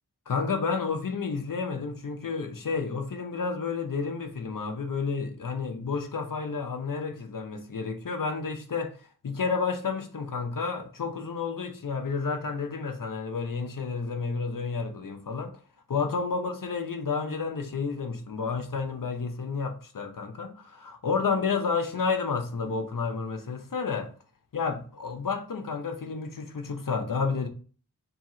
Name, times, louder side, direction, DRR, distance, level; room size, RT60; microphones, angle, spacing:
voice 1, 0.3-9.0 9.2-15.5 15.9-24.1 24.5-27.5, left 5 dB, 60° left, 0.7 m, -30 dB
2.9 x 2.8 x 3.7 m
cardioid pair, 40°, 38 cm